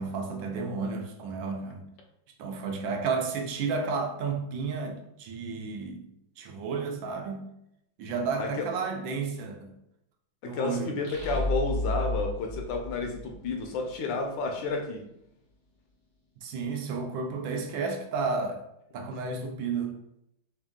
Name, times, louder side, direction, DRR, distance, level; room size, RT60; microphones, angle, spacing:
voice 1, 0.0-1.9 2.4-6.0 6.4-7.4 8.0-9.7 10.4-10.9 16.4-18.6 18.9-20.0, right 4 dB, 75° right, 3 dB, 1.2 m, -32 dB
voice 2, 10.4-15.0, left 3 dB, 75° left, 3 dB, 1.2 m, -31 dB
sound 1, 11.1-13.7, left 1 dB, 20° right, 0.6 m, -32 dB
3.6 x 2.6 x 3.5 m, 0.81 s
omnidirectional pair, 2.2 m